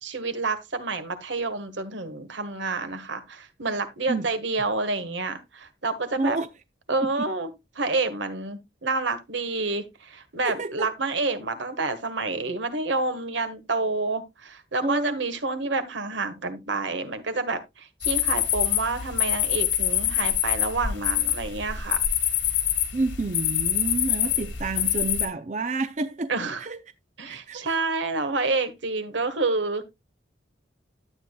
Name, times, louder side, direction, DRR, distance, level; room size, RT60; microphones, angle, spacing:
voice 1, 0.0-6.4 6.9-7.5 7.7-22.0 26.3-26.6 27.2-29.8, right 3 dB, 80° right, 1.5 m, -28 dB
voice 2, 6.2-6.5 7.0-7.3 10.4-10.9 14.8-15.3 22.9-26.3 26.6-26.8 27.3-27.8, right 3 dB, 40° right, 0.5 m, -29 dB
sound 1, 18.0-25.3, left 10 dB, 85° left, 1.7 m, -25 dB
11.5 x 8.5 x 2.3 m
head